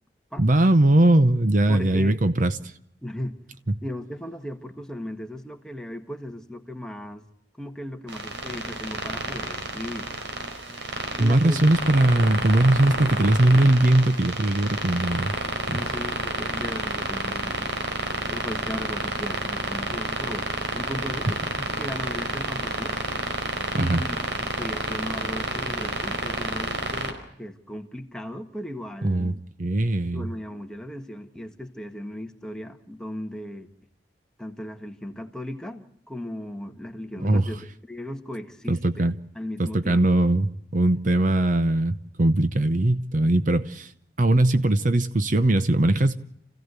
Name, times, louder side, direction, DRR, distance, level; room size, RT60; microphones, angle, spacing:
voice 1, 0.4-2.7 11.2-15.3 15.7-15.8 23.7-24.0 29.0-29.3 29.6-30.3 37.2-37.5 38.7-39.1 39.6-43.9 44.2-46.2, right 1 dB, 45° right, 0.8 m, -20 dB
voice 2, 1.7-2.2 3.0-3.4 3.8-7.3 7.6-10.1 11.2-11.7 15.7-17.7 18.3-20.5 20.7-23.0 23.7-24.3 24.6-29.4 30.1-33.7 34.4-40.1, left 1 dB, 5° left, 1.6 m, -36 dB
sound 1, 8.1-27.1, right 2 dB, 80° right, 4.6 m, -30 dB
28.5 x 16.0 x 8.2 m
head